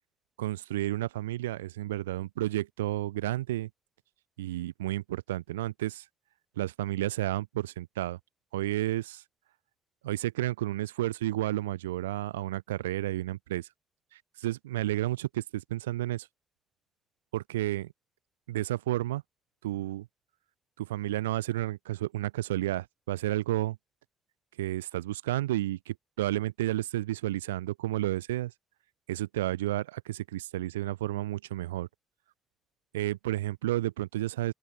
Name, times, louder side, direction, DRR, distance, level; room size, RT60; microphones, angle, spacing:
voice 1, 0.4-3.7 4.4-6.0 6.6-8.2 8.5-9.2 10.0-13.7 14.4-16.3 17.3-17.9 18.5-19.2 19.6-20.1 20.8-23.8 24.6-28.5 29.1-31.9 32.9-34.5, right 15 dB, 90° right, 1.3 m, -31 dB
open air
hypercardioid pair, 40°, 0 cm